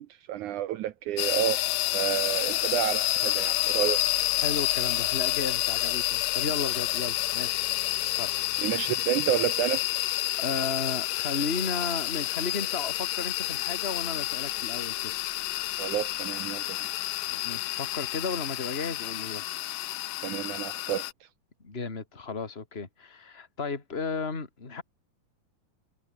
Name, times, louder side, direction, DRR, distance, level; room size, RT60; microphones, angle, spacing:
voice 1, 0.0-1.6 1.9-4.0 8.6-9.8 15.8-16.8 20.2-21.1, right 12 dB, 80° right, 1.8 m, -30 dB
sound 1, 1.2-21.1, left 17 dB, 75° left, 2.2 m, -29 dB
voice 2, 4.4-7.7 8.2-8.3 8.5-8.8 10.4-15.1 17.3-19.4 21.6-24.8, left 4 dB, 15° left, 2.7 m, -34 dB
omnidirectional pair, 4.6 m